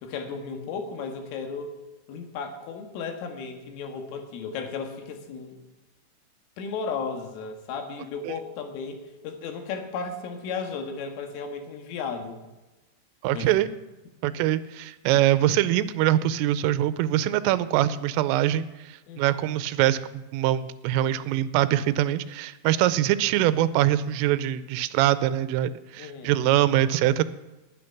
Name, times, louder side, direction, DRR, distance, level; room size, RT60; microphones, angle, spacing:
voice 1, 0.0-1.7 2.1-5.6 6.6-12.4 13.3-13.5 19.1-19.2 26.0-26.4, left 5 dB, 80° left, 5 dB, 4.3 m, -34 dB
voice 2, 13.2-13.7 14.2-27.2, right 13 dB, 90° right, 14 dB, 3.3 m, -23 dB
19.5 x 9.6 x 5.9 m, 1.1 s
omnidirectional pair, 5.7 m